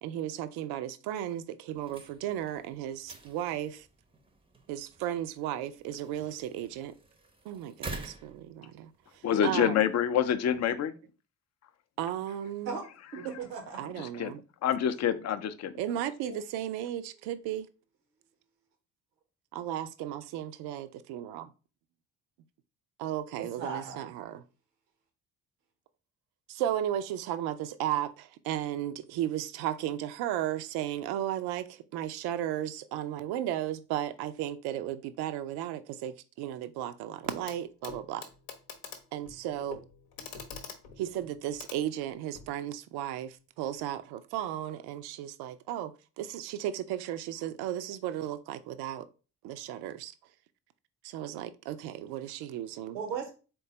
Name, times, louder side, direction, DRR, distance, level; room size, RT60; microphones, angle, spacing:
voice 1, 0.0-3.9 4.7-6.9 7.4-9.8 12.0-12.8 13.8-14.4 15.8-17.7 19.5-21.5 23.0-24.4 26.5-38.3 39.1-39.8 41.0-49.1 49.4-50.1 51.0-53.0, right 11 dB, 55° right, 0.5 m, -35 dB
sound 1, 1.7-9.2, right 3 dB, 10° right, 0.6 m, -48 dB
voice 2, 9.2-10.9 14.0-14.3 14.6-15.7 16.3-16.4, left 9 dB, 35° left, 0.5 m, -27 dB
voice 3, 13.1-13.8 23.4-24.1 52.9-53.3, right 6 dB, 80° right, 0.9 m, -36 dB
Clock, 37.2-37.6 37.8-42.5 43.8-43.9, left 6 dB, 65° left, 0.8 m, -46 dB
3.9 x 2.3 x 3.8 m
figure-of-eight pair, 40°, 48 cm